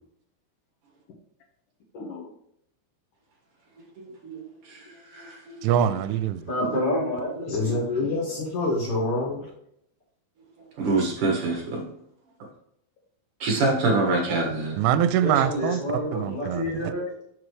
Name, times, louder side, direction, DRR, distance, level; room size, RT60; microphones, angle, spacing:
voice 1, 1.9-2.3 7.5-9.5, left 2 dB, 90° left, 1.8 m, -27 dB
voice 2, 4.2-5.7 10.8-11.9 13.4-14.8, right 3 dB, 65° right, 2.1 m, -26 dB
voice 3, 5.6-6.4 14.8-16.9, right 9 dB, 85° right, 3.0 m, -24 dB
voice 4, 6.5-7.6 15.2-17.0, equal, 15° left, 2.1 m, -28 dB
7.3 x 6.2 x 3.2 m
omnidirectional pair, 5.6 m